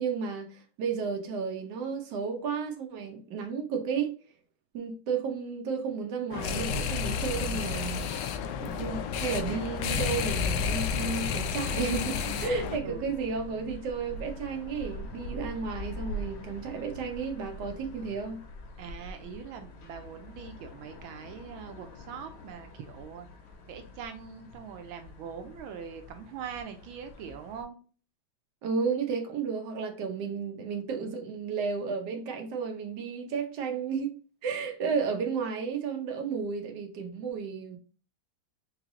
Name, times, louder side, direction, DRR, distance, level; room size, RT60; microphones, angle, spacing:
voice 1, 0.0-4.1 4.7-8.1 8.6-18.4 28.6-34.1 34.4-37.8, right 5 dB, 65° right, 1.4 m, -33 dB
sound 1, 6.3-12.8, left 7 dB, 75° left, 1.1 m, -31 dB
sound 2, 7.9-27.6, left 2 dB, 90° left, 1.7 m, -43 dB
voice 2, 8.6-9.4 12.8-13.2 18.8-23.3 23.7-27.8, right 7 dB, 85° right, 1.4 m, -43 dB
4.0 x 3.2 x 3.6 m
omnidirectional pair, 2.2 m